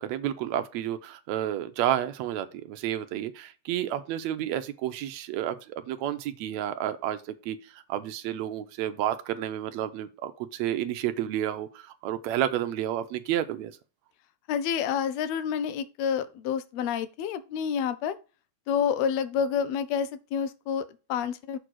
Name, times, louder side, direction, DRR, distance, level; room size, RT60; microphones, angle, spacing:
voice 1, 0.0-13.7, right 11 dB, 75° right, 1.7 m, -31 dB
voice 2, 14.5-18.2 18.7-21.6, left 7 dB, 75° left, 1.7 m, -29 dB
6.7 x 3.9 x 6.2 m
omnidirectional pair, 3.4 m